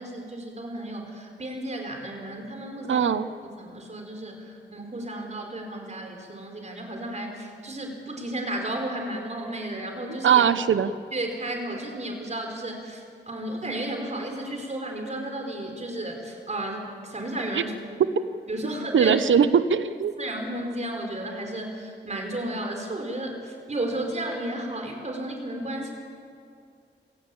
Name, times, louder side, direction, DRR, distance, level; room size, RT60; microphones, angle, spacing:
voice 1, 0.0-3.1 3.4-10.4 11.1-18.0 18.5-19.2 20.2-25.9, right 1 dB, 35° right, 3 dB, 4.8 m, -33 dB
voice 2, 2.9-3.3 10.2-10.9 17.5-17.6 18.9-20.1, right 7 dB, 80° right, 13 dB, 0.9 m, -20 dB
26.0 x 16.0 x 8.7 m, 2.4 s
wide cardioid pair, 100°, 20 cm